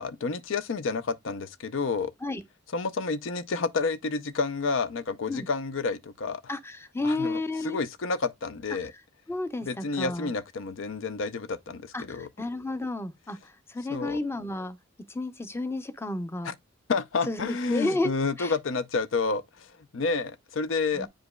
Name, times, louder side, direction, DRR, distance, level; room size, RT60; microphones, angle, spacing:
voice 1, 0.0-2.1 2.7-6.4 7.0-8.9 9.6-12.3 13.9-14.2 16.4-16.5 16.9-21.1, left 4 dB, 85° left, 0.6 m, -30 dB
voice 2, 6.5-7.8 9.3-10.3 11.9-14.8 15.1-16.5 17.3-18.1 18.4-18.5 21.0-21.1, left 2 dB, 15° left, 0.6 m, -31 dB
8.8 x 5.1 x 2.2 m
head